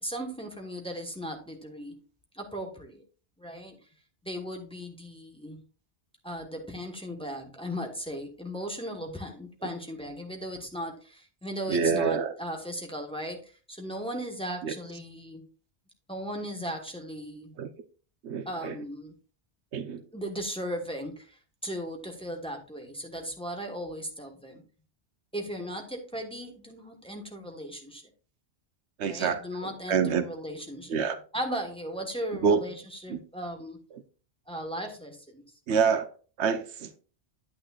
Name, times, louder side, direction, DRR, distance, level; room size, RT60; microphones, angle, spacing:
voice 1, 0.0-2.0 2.3-3.0 3.4-3.8 4.2-5.6 6.2-15.4 16.1-17.5 18.4-19.1 20.1-24.6 25.3-28.0 29.1-30.9 31.3-33.8 34.5-35.5, equal, 5° left, 1.2 m, -37 dB
voice 2, 11.7-12.3 14.6-14.7 17.6-17.7 18.2-18.8 19.7-20.0 29.0-30.2 30.9-31.2 32.4-32.6 33.1-33.2 33.9-34.0 35.7-36.1 36.4-36.9, right 6 dB, 80° right, 1.0 m, -27 dB
9.3 x 8.7 x 2.4 m
omnidirectional pair, 1.1 m